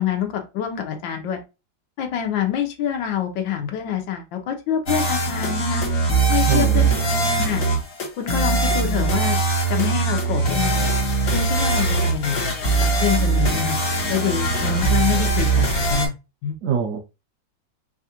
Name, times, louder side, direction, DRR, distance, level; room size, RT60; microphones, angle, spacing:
voice 1, 0.0-1.4 2.0-5.8 6.3-6.9 7.2-7.6 8.2-9.4 9.7-10.9 11.3-12.4 13.0-13.8 14.1-16.1 16.4-16.6, left 9 dB, 85° left, 4 dB, 1.5 m, -26 dB
sound 1, 4.9-16.1, right 3 dB, 65° left, 2.0 m, -21 dB
voice 2, 6.4-7.5 16.6-17.0, right 7 dB, 90° right, 3 dB, 0.7 m, -25 dB
5.1 x 2.4 x 2.8 m, 0.27 s
omnidirectional pair, 2.0 m